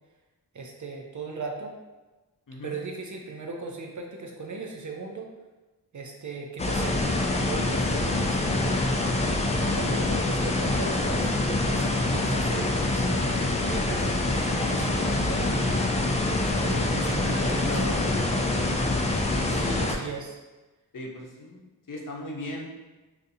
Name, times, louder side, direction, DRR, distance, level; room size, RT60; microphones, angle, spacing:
voice 1, 0.5-1.7 2.6-5.3 5.9-8.8 9.5-15.6 16.4-17.9 19.5-20.4, right 4 dB, 50° right, 1 dB, 0.5 m, -37 dB
voice 2, 2.5-2.8 16.7-18.3 18.6-18.8 20.9-22.7, left 1 dB, 55° left, -1 dB, 0.7 m, -38 dB
sound 1, 6.6-20.0, left 2 dB, 20° left, 0.3 m, -25 dB
3.9 x 2.5 x 2.6 m, 1.2 s
wide cardioid pair, 70°, 39 cm